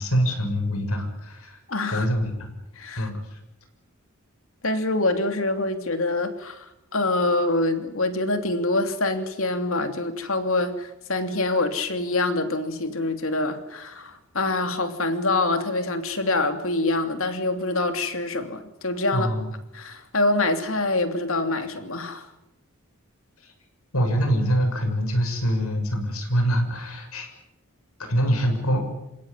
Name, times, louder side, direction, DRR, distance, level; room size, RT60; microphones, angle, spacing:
voice 1, 0.0-1.6 1.9-2.5 3.0-3.4 19.1-19.5 23.4-23.5 23.9-27.3 28.1-28.8, equal, 90° left, 5 dB, 7.0 m, -24 dB
voice 2, 1.7-2.1 2.8-3.1 4.6-6.6 6.9-19.3 19.7-22.3, left 2 dB, 70° left, 7 dB, 2.9 m, -25 dB
28.0 x 17.0 x 9.9 m, 0.90 s
head